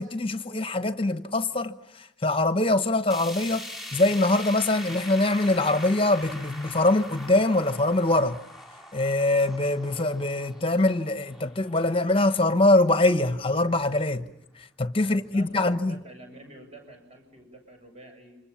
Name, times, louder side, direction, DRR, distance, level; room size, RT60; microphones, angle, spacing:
voice 1, 0.0-3.7 3.9-8.4 8.9-14.3 14.6-16.0, left 2 dB, 30° left, 1.0 m, -23 dB
sound 1, 3.1-13.3 13.7-13.8 14.1-14.2 15.1-15.2, left 1 dB, ahead, 5.0 m, -42 dB
voice 2, 15.0-18.4, right 2 dB, 30° right, 7.4 m, -48 dB
28.5 x 26.0 x 7.2 m
head